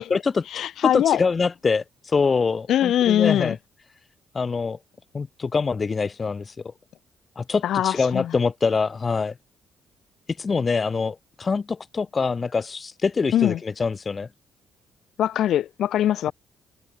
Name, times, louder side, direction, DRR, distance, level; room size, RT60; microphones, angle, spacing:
voice 1, 0.0-3.6 4.3-4.8 5.1-6.5 7.4-9.3 10.4-14.3, left 4 dB, 35° left, 2.3 m, -25 dB
voice 2, 0.5-1.2 2.7-3.6 7.6-8.3 13.3-13.6 15.2-16.3, left 11 dB, 75° left, 3.4 m, -22 dB
cardioid pair, 90°, 0 cm